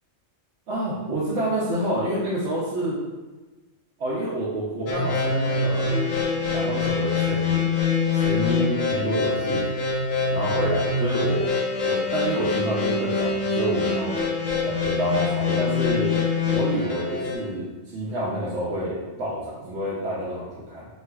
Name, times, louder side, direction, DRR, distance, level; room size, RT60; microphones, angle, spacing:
voice 1, 0.7-3.0 4.0-6.0 6.5-7.7 8.1-9.6 10.3-11.5 11.8-14.2 14.6-16.1 16.4-20.9, right 1 dB, 65° right, -8 dB, 0.9 m, -28 dB
sound 1, 4.9-17.4, left 4 dB, 80° left, 1.1 m, -24 dB
4.3 x 2.3 x 2.2 m, 1.2 s
omnidirectional pair, 1.4 m